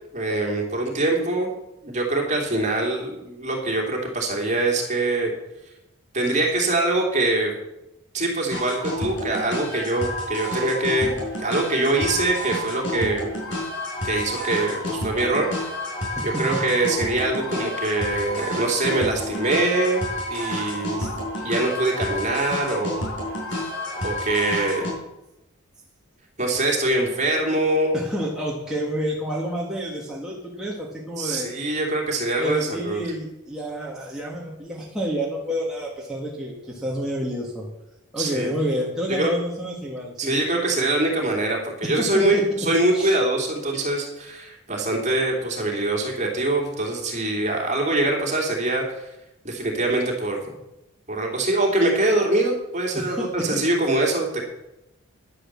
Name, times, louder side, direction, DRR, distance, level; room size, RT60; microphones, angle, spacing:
voice 1, 0.1-1.5 1.8-5.3 6.1-7.5 8.1-13.3 14.0-15.7 16.2-20.0 20.3-21.0 21.4-22.9 24.0-24.9 26.4-28.0 31.2-33.0 38.2-38.5 39.1-39.3 40.2-49.1 49.4-50.5 51.1-54.5, right 2 dB, 35° right, 0 dB, 3.0 m, -23 dB
sound 1, 8.5-24.9, equal, 55° left, 5.5 m, -30 dB
voice 2, 27.9-31.5 32.4-37.7 38.1-40.4 41.8-42.4 42.9-43.2 52.9-53.5, equal, 5° right, -4 dB, 1.8 m, -29 dB
10.5 x 9.8 x 7.5 m, 0.92 s
head